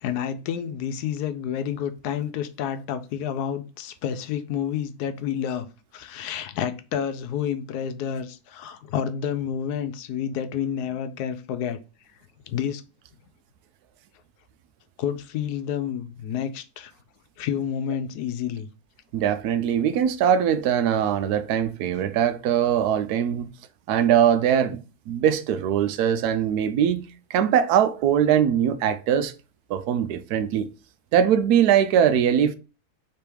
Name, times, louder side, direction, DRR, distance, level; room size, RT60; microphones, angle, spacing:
voice 1, 0.0-5.7 5.9-11.8 12.5-12.8 15.0-16.9 17.4-18.7, left 8 dB, 85° left, 1.1 m, -29 dB
voice 2, 19.1-23.5 23.9-29.3 29.7-30.7 31.1-32.5, right 9 dB, 80° right, 1.1 m, -21 dB
3.5 x 3.2 x 4.5 m
omnidirectional pair, 1.7 m